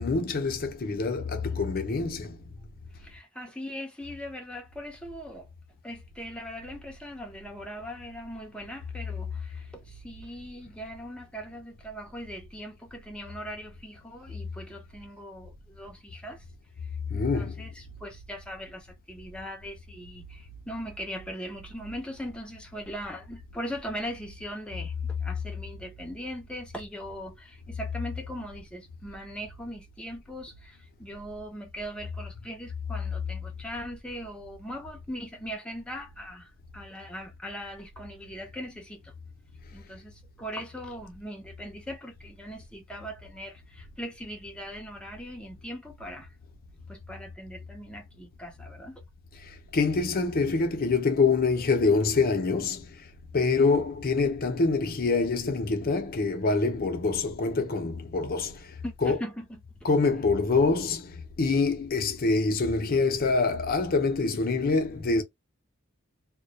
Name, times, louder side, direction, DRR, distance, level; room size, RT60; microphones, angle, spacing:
voice 1, 0.0-2.4 17.1-17.5 49.7-52.9 53.3-58.6 59.0-59.2 59.8-65.2, left 4 dB, 45° left, 0.6 m, -25 dB
voice 2, 2.9-5.5 5.8-16.4 17.1-39.1 39.7-46.3 46.9-49.0 58.8-59.9, equal, 5° left, 0.6 m, -40 dB
2.2 x 2.1 x 2.7 m
head